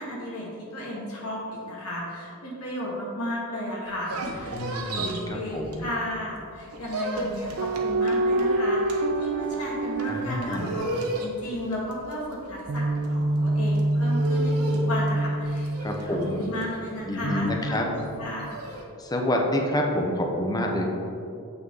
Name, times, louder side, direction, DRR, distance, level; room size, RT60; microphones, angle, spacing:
voice 1, 0.0-4.6 5.0-15.7 16.0-18.5, left 1 dB, 80° left, -5 dB, 1.8 m, -34 dB
sound 1, 3.9-6.2 6.5-18.8, right 1 dB, 80° right, 1.0 m, -35 dB
voice 2, 4.5-5.9 10.1-10.8 15.8-16.4 17.1-17.9 19.0-20.9, left 1 dB, 20° left, 1 dB, 0.8 m, -28 dB
sound 2, 7.6-11.3 12.7-16.4 17.2-18.5, right 1 dB, 60° right, 0.4 m, -26 dB
7.5 x 6.1 x 3.9 m, 2.6 s
head